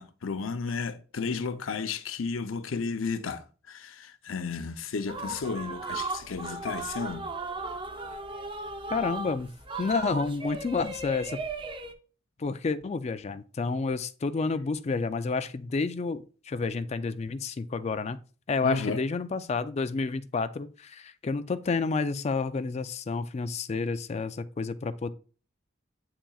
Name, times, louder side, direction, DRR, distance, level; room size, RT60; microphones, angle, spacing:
voice 1, 0.0-7.3 18.6-19.0, left 4 dB, 85° left, 0.6 m, -33 dB
sound 1, 5.1-11.9, right 3 dB, 25° right, 0.6 m, -36 dB
voice 2, 8.9-9.5 9.8-11.4 12.4-18.2 18.5-25.1, left 4 dB, 35° left, 0.4 m, -30 dB
8.5 x 5.8 x 2.3 m
head